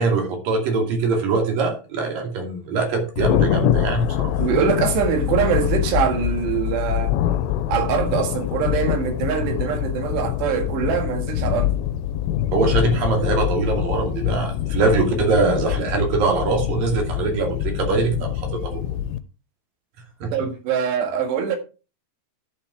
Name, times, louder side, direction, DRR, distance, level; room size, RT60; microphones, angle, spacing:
voice 1, 0.0-4.4 12.5-18.8 20.2-20.3, right 4 dB, 55° right, 3.9 m, -22 dB
Thunder, 3.2-19.2, left 12 dB, 85° left, 2.9 m, -24 dB
voice 2, 4.4-7.1 7.7-11.7 20.3-21.6, right 7 dB, 80° right, 3.9 m, -23 dB
11.5 x 7.1 x 4.6 m
omnidirectional pair, 4.9 m